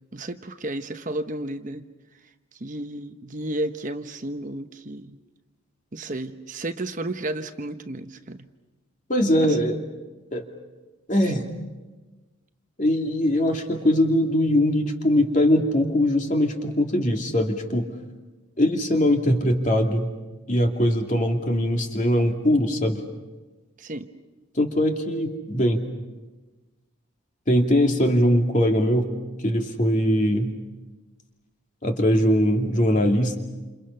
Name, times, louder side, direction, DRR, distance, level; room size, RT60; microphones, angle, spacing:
voice 1, 0.1-1.8 2.6-5.2 5.9-8.5 9.4-9.7 11.2-11.5 23.8-24.1, right 1 dB, 35° right, 8 dB, 0.9 m, -32 dB
voice 2, 9.1-9.8 10.3-10.4 11.1-11.5 12.8-17.8 18.6-20.1 20.5-23.0 24.5-25.8 27.5-29.1 29.4-30.5 31.8-33.4, equal, 35° left, 3 dB, 2.6 m, -21 dB
28.5 x 28.5 x 5.7 m, 1.2 s
head